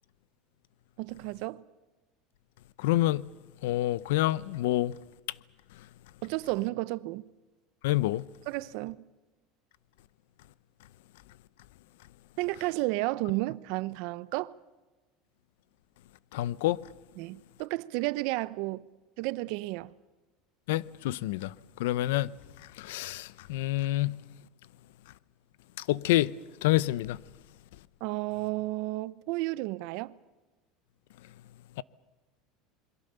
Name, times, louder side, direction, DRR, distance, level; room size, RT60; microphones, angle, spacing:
voice 1, 1.0-1.6 6.2-7.3 8.5-9.0 12.4-14.5 17.2-18.8 19.2-19.9 28.0-30.2, right 20 dB, 65° right, 0.8 m, -32 dB
voice 2, 2.8-3.3 3.6-4.9 7.8-8.3 16.3-16.8 20.7-21.5 21.8-22.3 22.8-24.2 25.8-26.3 26.6-27.2 31.8-31.9, left 16 dB, 85° left, 0.7 m, -27 dB
27.5 x 22.5 x 6.8 m
supercardioid pair, 145°, 0 cm